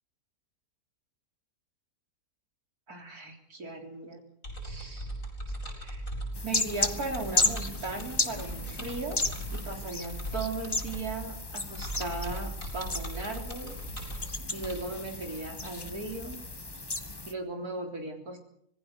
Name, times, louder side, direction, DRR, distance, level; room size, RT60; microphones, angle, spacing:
voice 1, 2.9-4.2 4.6-5.1 5.8-6.1 6.4-9.2 9.5-13.8 14.5-16.4 17.3-18.4, right 2 dB, 85° right, 3 dB, 4.1 m, -37 dB
sound 1, 4.4-14.7, right 1 dB, 60° left, 7.3 m, -39 dB
sound 2, 6.3-17.3, left 2 dB, 15° left, 1.2 m, -34 dB
25.5 x 19.5 x 6.6 m, 0.72 s
omnidirectional pair, 1.5 m